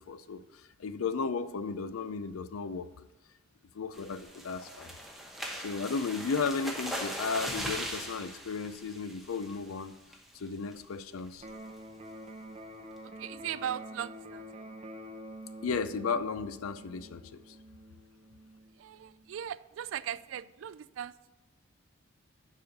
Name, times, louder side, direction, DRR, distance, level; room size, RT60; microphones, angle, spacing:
voice 1, 0.1-0.4 0.8-2.9 3.7-4.9 5.6-10.0 10.3-11.5 15.6-17.6, left 5 dB, 85° left, 12 dB, 0.5 m, -34 dB
sound 1, 3.9-9.7 10.1-10.4 10.7-10.8 11.2-11.5, equal, ahead, 0.9 m, -39 dB
Electric guitar, 11.4-19.4, equal, 30° right, 0.6 m, -47 dB
voice 2, 13.0-14.7 18.8-21.3, right 9 dB, 65° right, 17 dB, 0.3 m, -39 dB
6.9 x 5.1 x 6.6 m, 1.0 s
head